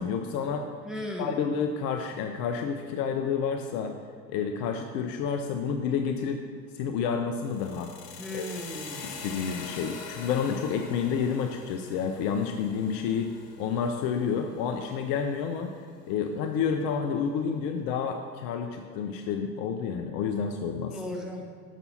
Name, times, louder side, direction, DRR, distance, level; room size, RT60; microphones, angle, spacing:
voice 1, 0.0-0.7 1.2-3.9 4.3-6.4 6.7-7.9 8.3-8.4 9.0-15.8 16.1-21.0, left 6 dB, 50° left, 5 dB, 0.6 m, -29 dB
voice 2, 0.8-1.5 8.2-9.2 20.9-21.5, equal, ahead, -2 dB, 1.2 m, -36 dB
sound 1, 7.4-15.5, left 5 dB, 80° left, 0.9 m, -44 dB
6.8 x 6.1 x 4.1 m, 2.1 s
hypercardioid pair, 75°, 47 cm